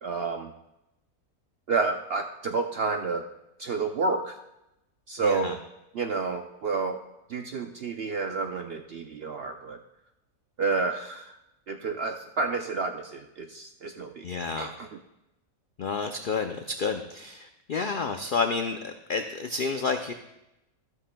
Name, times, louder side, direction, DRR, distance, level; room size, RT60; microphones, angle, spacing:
voice 1, 0.0-0.5 1.7-3.2 3.6-4.4 5.1-5.6 5.9-7.0 7.3-9.8 10.6-11.4 11.7-14.3 14.6-15.0, right 4 dB, 70° right, 5 dB, 0.5 m, -30 dB
voice 2, 5.2-5.5 14.2-14.7 15.8-20.1, left 4 dB, 90° left, 6 dB, 0.4 m, -30 dB
13.0 x 12.5 x 2.2 m, 0.91 s
omnidirectional pair, 1.6 m